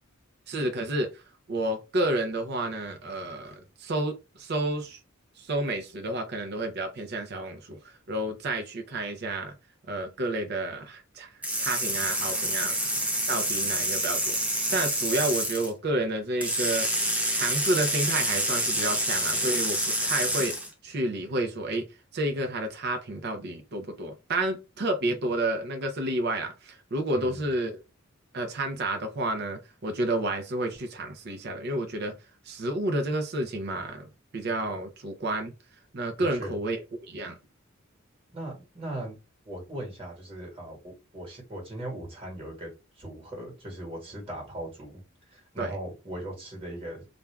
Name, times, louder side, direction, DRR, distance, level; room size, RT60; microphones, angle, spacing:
voice 1, 0.5-1.2 1.5-5.0 5.4-9.5 9.9-12.8 13.3-14.4 14.7-16.9 17.3-20.5 20.8-21.8 22.1-27.8 28.3-32.1 32.4-35.5 35.9-36.8 37.1-37.4 45.6-45.7, right 1 dB, 50° right, 0.6 m, -30 dB
sound 1, 11.4-15.7 16.4-20.7, right 1 dB, 5° right, 0.5 m, -27 dB
voice 2, 27.1-27.4 36.2-36.6 38.3-39.2 39.4-45.0 45.3-47.1, right 1 dB, 25° right, 1.3 m, -39 dB
2.5 x 2.2 x 3.2 m
head